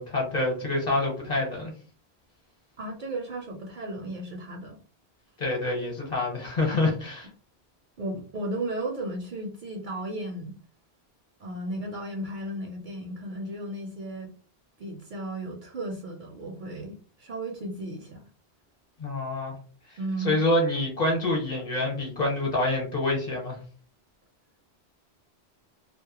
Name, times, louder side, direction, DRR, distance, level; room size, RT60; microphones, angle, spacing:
voice 1, 0.0-1.7 5.4-7.3 19.0-19.6 20.2-23.6, left 2 dB, 45° left, -1 dB, 0.9 m, -26 dB
voice 2, 2.8-4.8 8.0-10.6 11.4-14.3 14.8-18.3 20.0-20.4, right 1 dB, 60° right, 2 dB, 0.6 m, -35 dB
2.2 x 2.0 x 2.8 m, 0.38 s
omnidirectional pair, 1.1 m